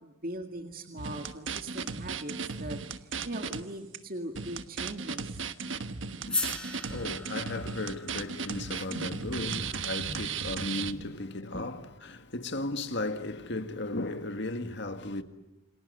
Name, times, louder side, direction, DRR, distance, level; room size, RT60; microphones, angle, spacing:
voice 1, 0.0-5.5 6.9-7.0 8.9-9.2 9.5-9.6 10.0-10.2 10.9-11.1, right 1 dB, 45° right, 2.0 m, -40 dB
sound 1, 1.0-3.6 3.9-4.0 4.4-10.9, right 5 dB, 65° right, 1.3 m, -36 dB
voice 2, 6.3-15.2, left 2 dB, 55° left, 1.9 m, -36 dB
sound 2, 6.3-10.5, left 2 dB, 5° left, 5.3 m, -39 dB
29.0 x 26.0 x 8.0 m
head